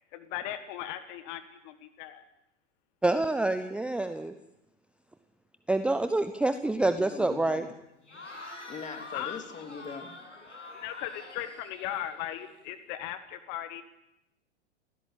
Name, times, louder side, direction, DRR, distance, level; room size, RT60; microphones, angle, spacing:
voice 1, 0.1-2.2 9.1-9.4 10.7-13.8, left 11 dB, 40° left, 11 dB, 1.7 m, -38 dB
voice 2, 3.0-4.3 5.7-7.6, right 2 dB, 5° right, 10 dB, 0.8 m, -27 dB
voice 3, 7.0-7.7 8.1-8.2 8.7-10.1, left 5 dB, 20° left, 7 dB, 3.1 m, -41 dB
Cheering / Crowd, 8.0-12.7, left 2 dB, 80° left, 6.6 m, -46 dB
28.5 x 16.0 x 8.6 m, 0.87 s
figure-of-eight pair, 95°, 36 cm